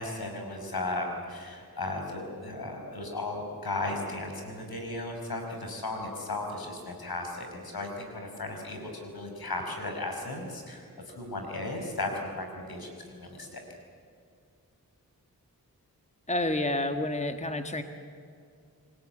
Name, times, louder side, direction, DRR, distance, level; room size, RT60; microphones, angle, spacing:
voice 1, 0.0-13.6, left 2 dB, 75° left, 3 dB, 5.4 m, -35 dB
voice 2, 16.3-17.8, left 1 dB, 20° left, 7 dB, 1.8 m, -29 dB
27.0 x 20.5 x 9.1 m, 2.4 s
cardioid pair, 40°, 37 cm